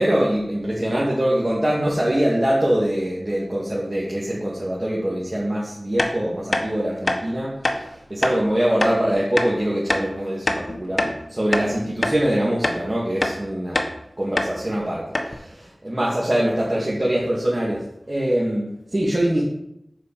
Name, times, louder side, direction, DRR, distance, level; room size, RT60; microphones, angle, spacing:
voice 1, 0.0-13.8 14.2-19.4, right 1 dB, 35° right, -6 dB, 2.2 m, -23 dB
sound 1, 6.0-6.1 6.5-6.7 7.0-7.2 7.6-7.8 8.2-8.4 8.8-8.9 9.4-9.5 9.9-10.1 10.5-11.2 11.5-11.7 12.0-12.2 12.6-12.8 13.2-13.4 13.7-13.9 14.4-14.5 14.8-14.9 15.1-15.3, left 1 dB, 55° left, 1.2 m, -23 dB
7.4 x 5.1 x 6.8 m, 0.79 s
wide cardioid pair, 45°, 0 cm